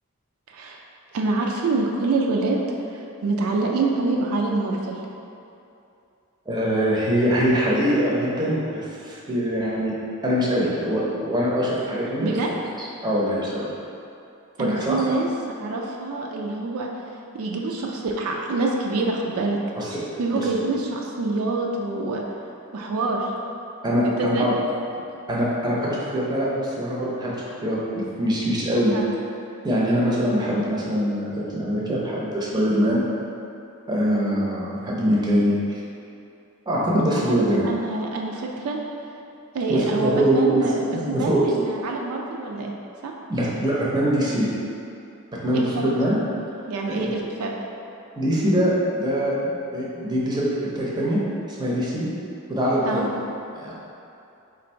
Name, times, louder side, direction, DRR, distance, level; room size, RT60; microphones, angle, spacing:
voice 1, 0.5-0.8 1.1-2.6 2.9-5.0 12.2-12.5 14.6-15.3 15.6-16.9 17.3-19.6 20.2-22.2 22.7-23.3 24.0-24.5 28.9-29.1 37.0-38.8 39.5-42.7 43.0-43.1 45.5-45.9 46.7-47.5 52.8-53.1, right 3 dB, 70° right, 0 dB, 0.4 m, -26 dB
voice 2, 6.5-9.9 10.2-12.3 12.8-13.7 14.6-15.1 19.8-20.0 20.3-20.5 23.8-24.5 25.3-28.9 29.6-33.0 33.9-35.5 36.7-37.7 39.7-41.5 43.3-44.5 45.4-46.2 46.8-47.1 48.2-51.2 51.5-52.1 52.5-53.1 53.5-53.7, equal, 20° right, -6 dB, 0.6 m, -23 dB
3.7 x 2.6 x 4.3 m, 2.7 s
head